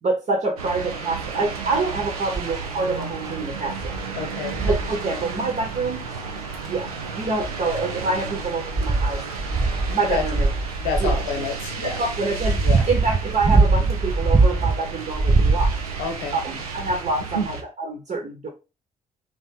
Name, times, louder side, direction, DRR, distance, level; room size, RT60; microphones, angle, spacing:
voice 1, 0.0-4.0 4.6-6.0 6.7-9.2 9.9-10.5 11.0-11.2 11.8-12.6 12.9-15.7 16.3-18.5, right 3 dB, 45° right, 2 dB, 1.0 m, -26 dB
sound 1, 0.6-17.6, right 5 dB, 85° right, 0.5 m, -33 dB
sound 2, 2.3-2.7 3.2-3.3 3.8-4.0 4.5-5.0 6.4-6.5 7.3-7.9 8.4-11.3 12.0-14.8 15.1-16.1 16.9-17.0, right 3 dB, 20° right, 0.5 m, -21 dB
voice 2, 4.1-4.6 10.1-10.3 10.8-12.0 12.6-12.9 16.0-16.4 17.3-17.5, left 4 dB, 75° left, 4 dB, 0.8 m, -28 dB
3.0 x 2.5 x 3.6 m, 0.29 s
figure-of-eight pair, 40°, 18 cm